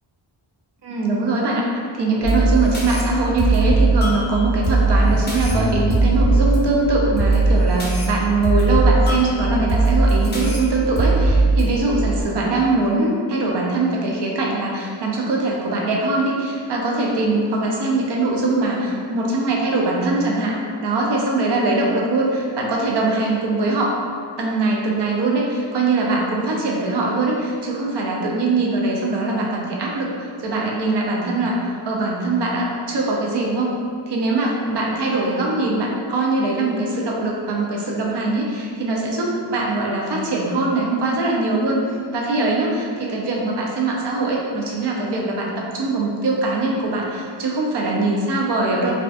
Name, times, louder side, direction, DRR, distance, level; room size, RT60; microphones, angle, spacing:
voice 1, 0.8-24.0 24.4-33.7 34.1-41.8 42.1-48.9, right 2 dB, 55° right, -2 dB, 0.5 m, -22 dB
sound 1, 2.2-12.2, right 2 dB, 25° left, 0.4 m, -19 dB
2.4 x 2.4 x 2.3 m, 2.2 s
wide cardioid pair, 145°, 49 cm